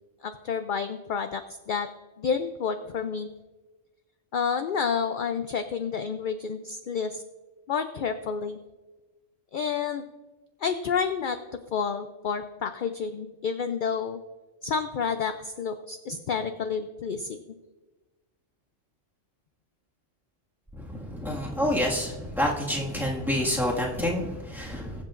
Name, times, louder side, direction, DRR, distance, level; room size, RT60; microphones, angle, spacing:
voice 1, 0.2-1.9 2.2-3.3 4.3-7.2 7.7-8.6 9.5-10.0 10.6-11.4 11.7-14.2 14.6-17.6, left 6 dB, 55° left, 9 dB, 0.6 m, -29 dB
voice 2, 20.7-25.0, left 1 dB, ahead, -3 dB, 1.7 m, -28 dB
21.5 x 7.5 x 2.5 m, 1.2 s
omnidirectional pair, 1.2 m